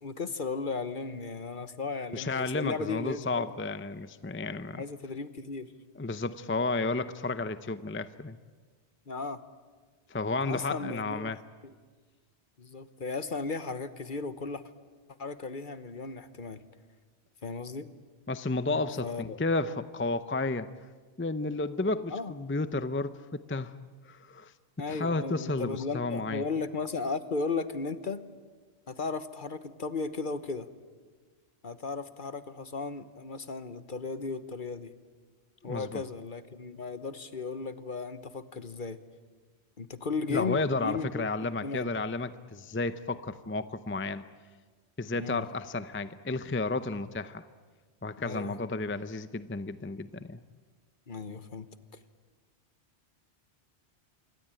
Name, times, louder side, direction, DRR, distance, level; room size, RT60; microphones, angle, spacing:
voice 1, 0.0-3.5 4.8-5.7 9.1-9.4 10.4-11.3 11.6-11.7 12.6-14.6 15.2-16.6 17.4-17.9 19.0-19.4 22.1-22.3 24.8-28.2 28.9-30.7 31.6-34.9 35.6-39.0 39.8-41.9 45.1-45.5 48.2-48.6 51.1-51.7, left 4 dB, 50° left, 12 dB, 1.3 m, -35 dB
voice 2, 2.1-4.8 6.0-8.4 10.1-11.4 18.3-20.7 21.2-23.7 24.0-24.5 24.9-26.4 35.7-36.0 40.3-44.2 45.0-47.4 48.0-50.4, left 3 dB, 15° left, 12 dB, 0.6 m, -32 dB
27.0 x 23.5 x 9.0 m, 1.4 s
omnidirectional pair, 1.1 m